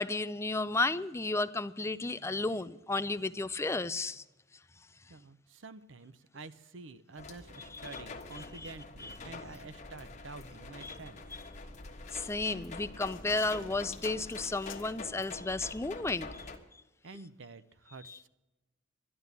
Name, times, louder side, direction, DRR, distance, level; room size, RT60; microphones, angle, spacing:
voice 1, 0.0-4.2 7.7-7.8 8.4-8.7 9.0-9.2 10.8-11.0 12.1-16.5 18.0-18.2, left 3 dB, 15° left, 0.4 m, -33 dB
voice 2, 5.1-11.2 17.0-18.3, right 3 dB, 70° right, 0.7 m, -49 dB
sound 1, 7.2-16.6, left 3 dB, 35° left, 1.5 m, -46 dB
sound 2, 12.0-15.1, left 11 dB, 65° left, 0.8 m, -53 dB
12.0 x 11.0 x 8.2 m
head